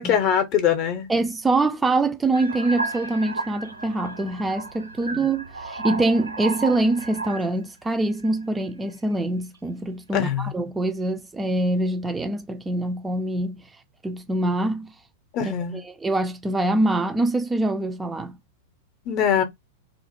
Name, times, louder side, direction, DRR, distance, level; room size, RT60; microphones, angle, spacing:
voice 1, 0.0-1.1 5.1-5.2 10.1-10.5 15.3-15.8 19.1-19.4, left 9 dB, 40° left, 0.6 m, -22 dB
voice 2, 1.1-13.6 14.0-14.9 15.4-15.5 16.0-18.4, right 2 dB, 10° right, 0.4 m, -24 dB
sound 1, 2.3-7.6 8.2-8.6, right 3 dB, 85° right, 0.4 m, -33 dB
2.4 x 2.0 x 2.8 m
figure-of-eight pair, 95°, 0 cm